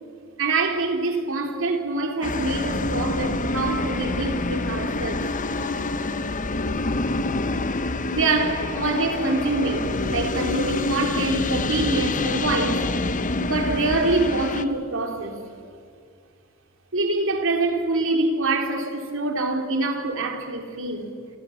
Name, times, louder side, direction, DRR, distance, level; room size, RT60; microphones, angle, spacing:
voice 1, 0.4-5.2 8.1-12.9 13.4-15.4 16.9-21.2, right 2 dB, 65° right, 3.6 m, -25 dB
sound 1, 2.2-14.7, left 2 dB, 35° left, 1.0 m, -26 dB
28.5 x 27.0 x 7.2 m
head